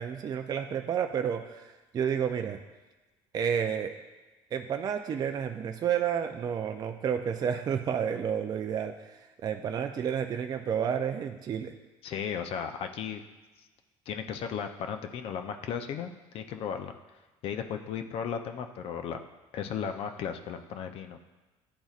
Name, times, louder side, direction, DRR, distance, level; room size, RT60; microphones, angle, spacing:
voice 1, 0.0-2.6 3.3-3.9 4.5-11.7, right 8 dB, 35° right, 5 dB, 0.4 m, -30 dB
voice 2, 12.0-13.2 13.6-13.7 14.1-16.9 17.4-19.2 19.5-21.2, left 7 dB, 60° left, 7 dB, 0.5 m, -35 dB
10.5 x 4.0 x 2.4 m, 1.2 s
cardioid pair, 115°, 11 cm